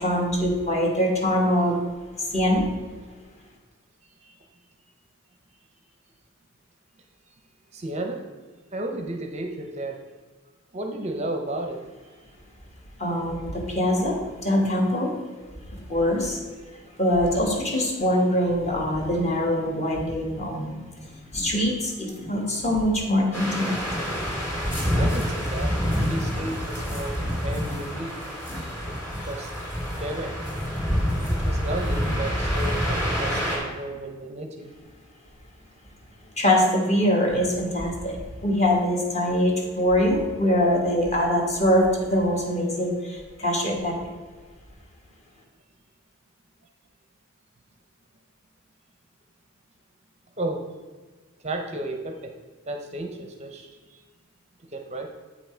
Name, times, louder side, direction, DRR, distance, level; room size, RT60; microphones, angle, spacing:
voice 1, 0.0-1.8 2.2-2.6 13.0-15.1 15.7-16.4 17.0-20.8 21.3-23.7 36.4-44.0, left 1 dB, 30° left, 0 dB, 1.4 m, -23 dB
voice 2, 7.7-8.2 8.7-10.0 10.7-12.1 25.0-25.7 26.0-28.2 28.9-29.5 29.8-30.5 31.3-34.7 50.4-50.6 51.4-52.3 52.7-54.0 54.7-55.1, right 1 dB, 30° right, 4 dB, 0.6 m, -33 dB
sound 1, 21.0-28.7, left 1 dB, 60° left, 1.6 m, -43 dB
sound 2, 23.3-33.6, equal, 10° left, 2.2 m, -27 dB
8.2 x 5.7 x 4.3 m, 1.4 s
head